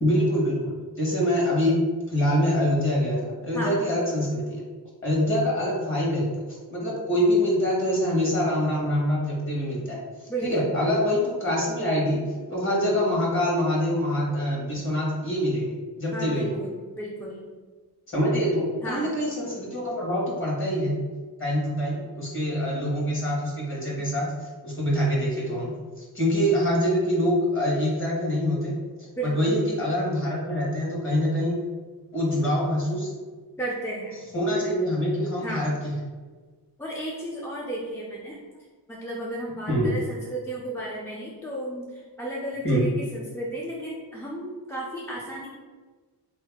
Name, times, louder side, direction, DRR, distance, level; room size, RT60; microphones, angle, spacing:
voice 1, 0.0-1.8 2.1-4.6 5.0-6.4 6.7-10.0 10.4-12.2 12.5-16.6 18.1-21.0 21.4-28.7 29.2-31.5 32.1-33.1 34.3-35.9 39.7-39.9 42.6-42.8, equal, 30° left, -4 dB, 1.2 m, -25 dB
voice 2, 10.3-10.7 16.1-16.7 17.0-17.5 18.8-19.1 29.2-29.5 33.6-34.2 35.4-35.7 36.8-38.4 38.9-45.5, right 1 dB, 5° left, -4 dB, 0.3 m, -33 dB
3.8 x 2.7 x 3.5 m, 1.4 s
wide cardioid pair, 160°, 43 cm